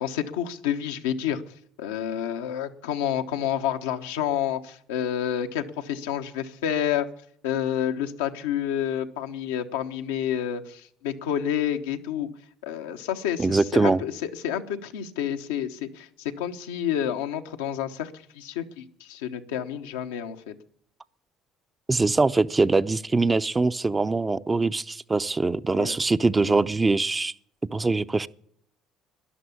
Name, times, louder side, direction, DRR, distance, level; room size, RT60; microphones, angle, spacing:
voice 1, 0.0-1.4 1.8-7.1 7.4-12.3 12.6-20.5 25.7-26.0 26.4-26.6, left 10 dB, 90° left, 1.0 m, -29 dB
voice 2, 13.4-14.0 21.9-27.3 27.7-28.3, right 3 dB, 25° right, 0.6 m, -23 dB
12.5 x 11.0 x 8.4 m
hypercardioid pair, 70°, 0 cm